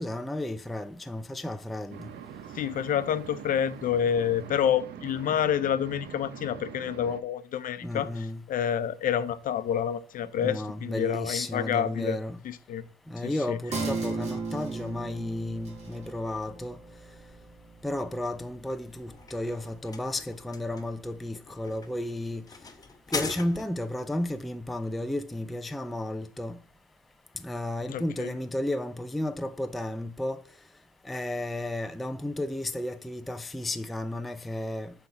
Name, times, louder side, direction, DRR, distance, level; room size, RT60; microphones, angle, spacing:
voice 1, 0.0-2.0 7.8-8.4 10.4-12.4 13.1-16.8 17.8-22.4 23.1-26.6 27.4-30.4 31.0-34.9, left 1 dB, ahead, 0.4 m, -33 dB
sound 1, 1.9-7.2, right 8 dB, 75° right, 0.8 m, -43 dB
voice 2, 2.5-12.2 12.4-12.8 13.2-13.6 27.9-28.3, left 9 dB, 55° left, 0.7 m, -28 dB
sound 2, 13.7-20.7 21.1-21.2, right 3 dB, 40° right, 2.4 m, -37 dB
sound 3, 18.9-24.0, left 4 dB, 20° left, 0.9 m, -40 dB
7.8 x 3.4 x 5.8 m
cardioid pair, 110°, 17 cm